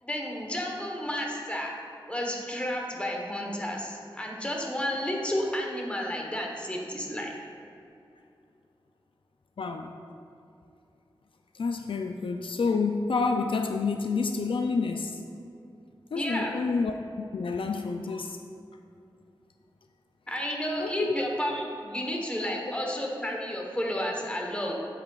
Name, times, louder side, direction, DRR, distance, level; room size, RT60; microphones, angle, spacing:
voice 1, 0.0-1.7 2.1-7.3 16.1-16.6 20.3-24.7, equal, 15° left, -1 dB, 1.1 m, -31 dB
voice 2, 9.6-9.9 11.6-15.2 16.1-16.9 17.3-18.4 20.8-21.2 22.4-22.6, left 4 dB, 75° left, 5 dB, 0.4 m, -29 dB
8.5 x 7.7 x 2.4 m, 2.6 s
wide cardioid pair, 75°, 9 cm